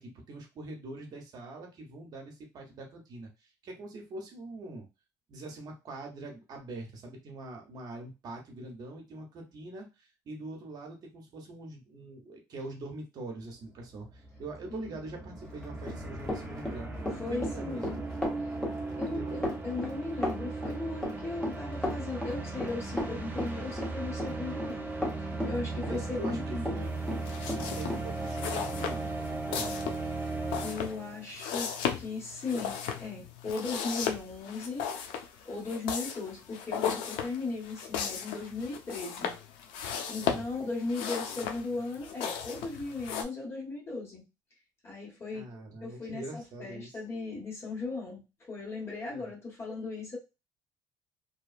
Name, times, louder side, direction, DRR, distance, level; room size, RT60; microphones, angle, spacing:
voice 1, 0.0-4.9 5.3-16.9 17.3-18.0 19.1-19.4 25.7-26.9 27.4-29.9 40.2-40.4 45.3-47.0 49.1-49.3, right 2 dB, 50° right, 2 dB, 0.9 m, -44 dB
sound 1, 13.5-13.6 13.8-31.2, right 3 dB, 20° right, 0.7 m, -37 dB
Run, 15.6-26.8 27.1-28.0, left 1 dB, 10° left, 1.0 m, -34 dB
voice 2, 17.2-18.0 19.0-26.9 30.6-31.7 32.0-34.9 35.4-39.4 40.1-44.2 44.8-45.5 45.8-50.2, left 3 dB, 30° left, -3 dB, 1.6 m, -37 dB
sound 2, 27.2-43.2, left 8 dB, 80° left, 0.5 m, -36 dB
2.8 x 2.2 x 2.4 m, 0.26 s
cardioid pair, 100°, 8 cm